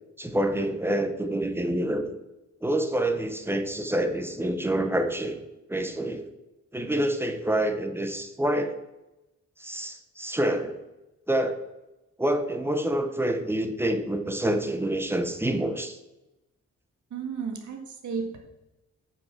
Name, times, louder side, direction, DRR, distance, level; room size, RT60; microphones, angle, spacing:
voice 1, 0.2-2.0 2.6-5.4 5.7-6.2 6.7-8.7 9.6-10.8 11.3-11.6 12.2-16.0, right 1 dB, 10° right, 7 dB, 0.7 m, -27 dB
voice 2, 17.1-18.4, right 6 dB, 80° right, 3 dB, 1.8 m, -33 dB
8.9 x 5.5 x 6.1 m, 0.97 s
wide cardioid pair, 180°, 29 cm